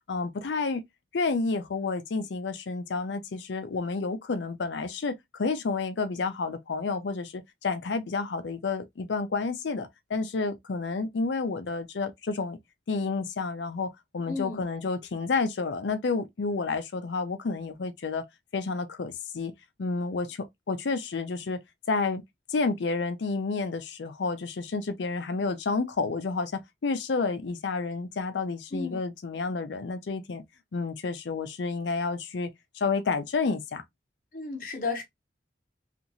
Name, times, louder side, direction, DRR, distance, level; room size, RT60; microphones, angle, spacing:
voice 1, 0.1-0.8 1.1-12.6 12.9-18.2 18.5-19.5 19.8-21.6 21.9-22.2 22.5-30.4 30.7-33.8, left 4 dB, 80° left, 0.5 m, -30 dB
voice 2, 14.3-14.6 28.7-29.0 34.3-35.0, left 4 dB, 50° left, 0.9 m, -33 dB
2.9 x 2.5 x 2.5 m
head